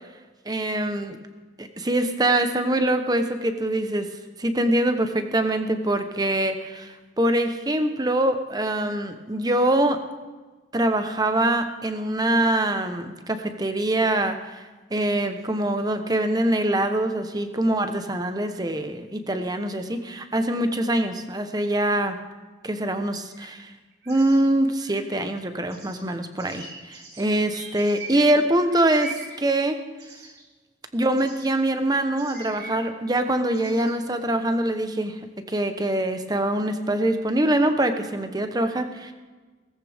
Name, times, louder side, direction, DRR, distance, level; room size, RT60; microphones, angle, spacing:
voice 1, 0.5-1.2 1.6-4.1 4.4-6.9 7.2-10.0 10.7-14.6 14.9-22.2 22.6-23.7 24.1-29.8 30.9-35.2 35.5-39.1, right 1 dB, 20° right, 7 dB, 1.0 m, -24 dB
sound 1, 23.3-23.5 23.7-25.0 25.7-30.4 31.1-31.6 32.0-32.9 33.5-34.0, right 3 dB, 70° right, 6.1 m, -42 dB
18.0 x 15.0 x 3.6 m, 1.3 s
head